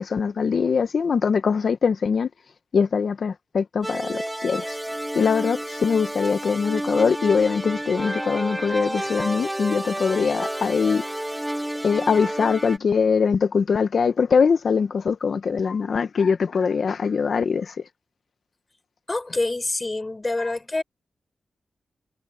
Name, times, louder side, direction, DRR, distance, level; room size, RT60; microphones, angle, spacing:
voice 1, 0.0-2.3 2.7-4.8 5.1-11.0 11.8-17.8, left 5 dB, 70° left, 0.9 m, -22 dB
sound 1, 3.8-12.8, right 1 dB, 10° right, 0.7 m, -30 dB
voice 2, 19.1-20.8, left 2 dB, 30° left, 5.0 m, -26 dB
cardioid pair, 50°, 0 cm